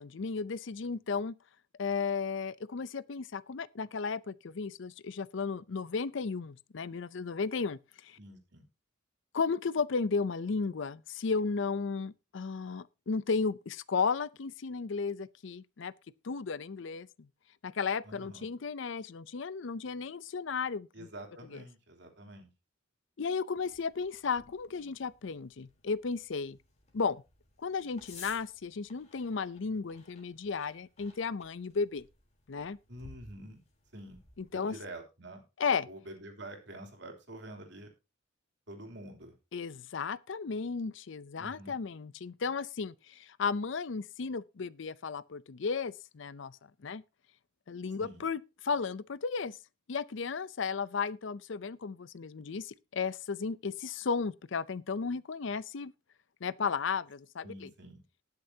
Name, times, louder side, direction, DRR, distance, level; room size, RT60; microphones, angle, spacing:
voice 1, 0.0-1.3 1.8-8.2 9.3-15.9 16.2-17.3 17.6-21.1 21.5-21.6 23.2-26.6 26.9-27.2 27.6-32.0 32.5-32.8 34.4-34.7 35.6-35.9 39.5-47.0 47.7-49.6 49.9-55.9 56.4-57.7, left 5 dB, 65° left, 0.5 m, -34 dB
voice 2, 8.2-8.6 18.0-18.5 20.9-22.5 32.9-33.6 33.9-34.2 34.5-35.4 35.9-37.9 38.7-39.3 41.4-41.7 48.0-48.2 57.4-58.0, right 1 dB, 60° right, 3.1 m, -47 dB
sound 1, 23.6-34.5, left 4 dB, 35° left, 3.5 m, -57 dB
19.5 x 6.7 x 2.8 m
head